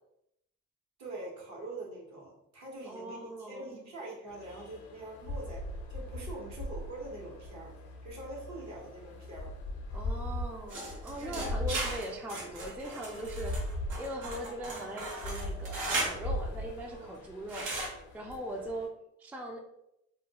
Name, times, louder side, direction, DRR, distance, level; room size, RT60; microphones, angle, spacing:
voice 1, 1.0-5.6 5.9-7.7 8.0-9.5 11.2-11.4 16.9-17.1, right 2 dB, 65° right, -2 dB, 1.0 m, -44 dB
voice 2, 2.9-3.7 9.9-13.6 14.0-17.7 18.1-18.9 19.2-19.6, right 1 dB, 5° right, 2 dB, 0.3 m, -40 dB
sound 1, 4.3-18.9, left 1 dB, 75° left, 0.6 m, -40 dB
sound 2, 10.7-16.2 17.5-17.9, right 2 dB, 90° right, 0.8 m, -37 dB
2.4 x 2.2 x 2.8 m, 0.82 s
cardioid pair, 90°, 30 cm